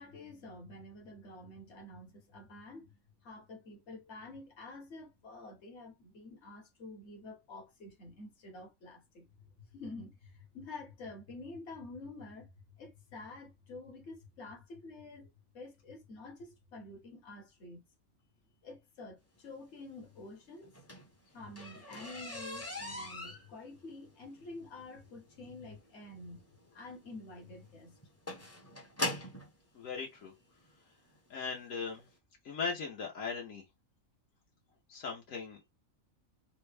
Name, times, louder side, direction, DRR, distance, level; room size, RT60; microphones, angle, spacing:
voice 1, 0.0-9.3 9.7-12.5 12.8-15.3 15.5-17.8 18.6-20.7 21.3-28.0, left 2 dB, 55° left, 1.3 m, -48 dB
sound 1, 20.6-29.5 30.4-30.5 31.0-31.3 31.5-31.6 32.0-32.1, left 1 dB, 15° left, 0.5 m, -41 dB
voice 2, 29.8-30.3 31.3-32.0 32.4-33.6 34.9-35.7, left 5 dB, 80° left, 1.2 m, -38 dB
3.4 x 2.2 x 3.3 m
omnidirectional pair, 1.4 m